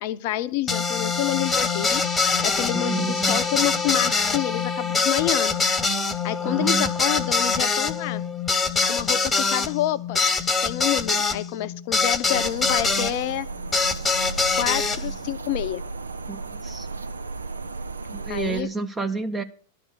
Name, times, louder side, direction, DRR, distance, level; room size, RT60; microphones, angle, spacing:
voice 1, 0.0-5.5 6.2-8.2 8.8-10.2 10.6-13.5 14.6-15.8 18.3-18.7, left 13 dB, 50° left, 12 dB, 0.7 m, -28 dB
sound 1, 0.7-13.1 13.7-15.0, left 4 dB, 15° left, 1.0 m, -24 dB
voice 2, 2.7-3.5 6.4-6.9 16.3-16.9 18.1-19.4, right 5 dB, 10° right, 7 dB, 0.7 m, -30 dB
sound 2, 12.3-18.6, right 3 dB, 75° right, 0.6 m, -34 dB
11.5 x 5.3 x 8.1 m, 0.42 s
figure-of-eight pair, 90°, 0 cm